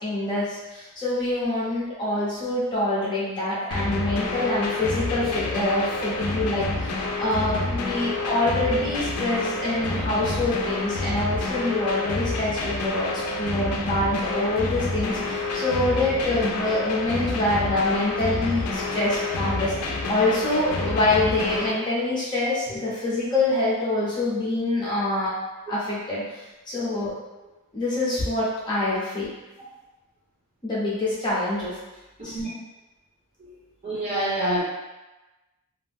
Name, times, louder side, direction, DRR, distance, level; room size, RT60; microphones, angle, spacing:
voice 1, 0.0-25.3 25.7-27.2 27.7-29.3 30.6-31.8 32.2-32.4, left 2 dB, 20° left, -9 dB, 0.6 m, -25 dB
sound 1, 3.7-21.7, left 2 dB, 85° left, 0.4 m, -28 dB
voice 2, 33.8-34.6, right 1 dB, 30° right, -8 dB, 0.9 m, -26 dB
2.4 x 2.1 x 3.3 m, 1.1 s
head